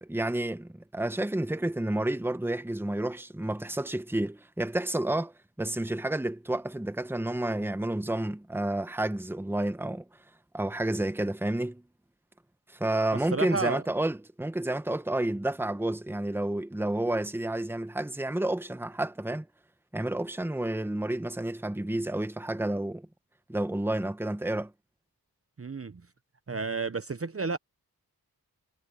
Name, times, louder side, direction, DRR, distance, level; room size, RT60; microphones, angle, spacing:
voice 1, 0.0-5.3 5.6-10.0 10.5-11.8 12.7-19.5 19.9-23.1 23.5-24.7, right 1 dB, 5° right, 1.1 m, -30 dB
voice 2, 13.3-13.8 25.6-26.0 26.5-27.6, right 4 dB, 35° right, 1.0 m, -31 dB
cardioid pair, 50°, 39 cm